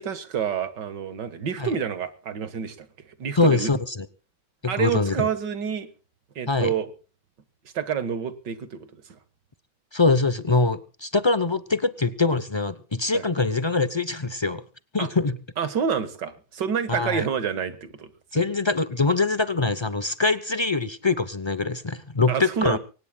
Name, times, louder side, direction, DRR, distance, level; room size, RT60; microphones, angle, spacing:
voice 1, 0.0-2.9 3.2-3.7 4.7-5.9 6.4-6.9 7.7-9.2 13.1-13.2 15.0-15.1 15.6-18.1 22.3-22.8, right 7 dB, 80° right, 12 dB, 2.3 m, -28 dB
voice 2, 3.4-4.1 4.6-5.3 6.5-6.7 9.9-14.6 14.9-15.4 16.9-17.3 18.3-22.8, left 3 dB, 45° left, 14 dB, 0.3 m, -23 dB
24.5 x 18.5 x 2.3 m, 0.35 s
omnidirectional pair, 1.9 m